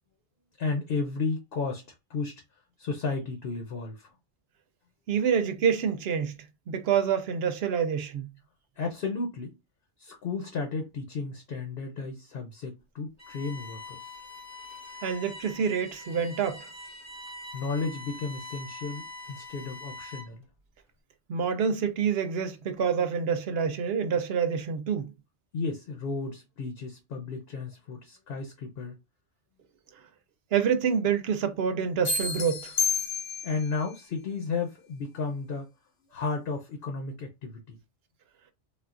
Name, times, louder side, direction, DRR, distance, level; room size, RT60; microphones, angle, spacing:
voice 1, 0.6-2.3 2.8-4.1 8.8-9.5 10.0-14.2 17.5-20.4 25.5-29.0 33.4-35.7 36.1-37.8, left 4 dB, 60° left, 0.9 m, -33 dB
voice 2, 5.1-6.3 6.7-8.3 15.0-16.7 21.3-25.1 30.5-32.7, right 7 dB, 65° right, 0.8 m, -27 dB
Bowed string instrument, 13.2-20.4, left 2 dB, 5° left, 0.9 m, -44 dB
sound 1, 32.0-33.7, left 5 dB, 90° left, 1.0 m, -29 dB
3.6 x 2.4 x 2.4 m
omnidirectional pair, 1.2 m